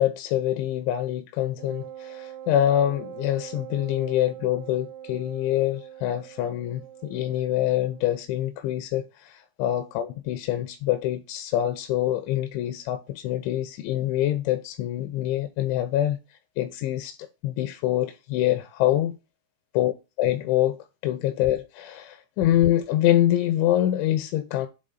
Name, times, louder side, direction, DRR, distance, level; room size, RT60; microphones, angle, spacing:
voice 1, 0.0-19.2 19.7-19.9 20.2-24.7, left 12 dB, 85° left, 2.8 m, -25 dB
Wind instrument woodwind instrument, 1.6-8.2, right 10 dB, 90° right, 3.2 m, -42 dB
7.8 x 3.4 x 3.8 m
omnidirectional pair, 5.8 m